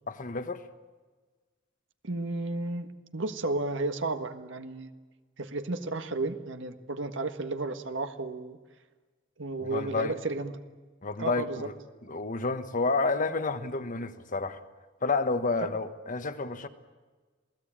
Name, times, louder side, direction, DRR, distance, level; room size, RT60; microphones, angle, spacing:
voice 1, 0.1-0.6 9.6-10.1 11.0-11.7 12.0-14.6 15.0-16.7, left 3 dB, 40° left, 9 dB, 1.4 m, -30 dB
voice 2, 2.0-2.9 3.1-4.9 5.4-8.6 9.4-10.5 11.2-11.7 12.1-12.2, right 2 dB, 70° right, 8 dB, 1.6 m, -33 dB
27.5 x 18.0 x 8.9 m, 1.4 s
head